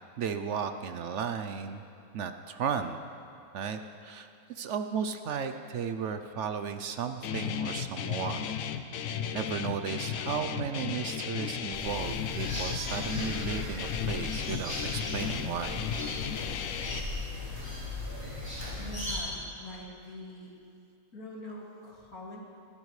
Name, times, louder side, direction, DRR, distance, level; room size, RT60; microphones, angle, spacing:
voice 1, 0.2-1.8 2.1-3.0 3.5-8.4 9.1-15.8, right 7 dB, 65° right, 8 dB, 0.8 m, -35 dB
Guitar, 7.2-17.0, left 8 dB, 70° left, 1.0 m, -34 dB
sound 1, 11.7-19.2, left 2 dB, 15° right, 4.2 m, -37 dB
voice 2, 18.8-20.5 21.1-22.4, left 1 dB, 90° left, -3 dB, 2.9 m, -44 dB
21.0 x 15.0 x 3.2 m, 2.5 s
omnidirectional pair, 1.5 m